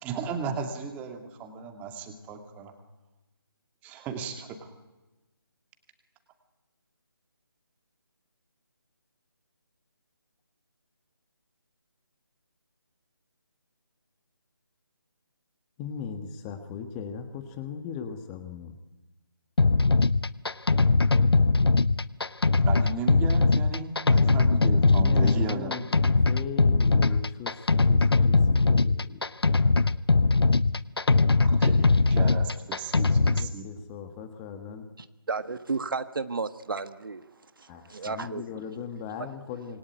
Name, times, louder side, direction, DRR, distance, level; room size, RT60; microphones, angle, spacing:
voice 1, 0.0-2.7 3.8-4.7 22.6-25.8 31.4-33.7, right 5 dB, 10° right, 2.4 m, -35 dB
voice 2, 15.8-18.8 24.1-29.2 33.1-34.9 37.7-39.8, left 7 dB, 15° left, 1.4 m, -39 dB
sound 1, 19.6-33.5, left 3 dB, 80° left, 0.9 m, -21 dB
voice 3, 35.3-37.2 37.6-38.4, right 4 dB, 60° right, 1.5 m, -32 dB
26.5 x 23.0 x 9.3 m
figure-of-eight pair, 155°, 13 cm